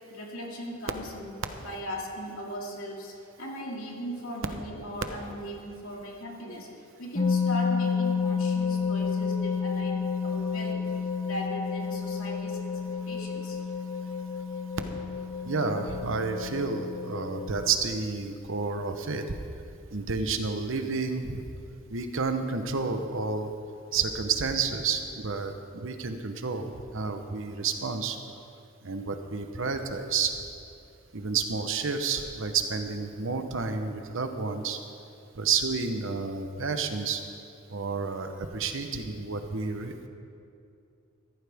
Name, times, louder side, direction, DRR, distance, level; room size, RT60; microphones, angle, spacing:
voice 1, 0.1-10.9 11.2-12.7 13.1-13.6, equal, 90° left, -2 dB, 2.5 m, -38 dB
sound 1, 7.2-17.7, left 5 dB, 35° left, 1.3 m, -30 dB
voice 2, 15.4-19.3 19.9-21.4 21.9-23.5 23.9-28.2 28.8-30.3 31.1-34.8 35.3-37.2 37.7-40.1, right 4 dB, 65° right, 7 dB, 1.0 m, -30 dB
15.0 x 14.0 x 3.6 m, 2.6 s
head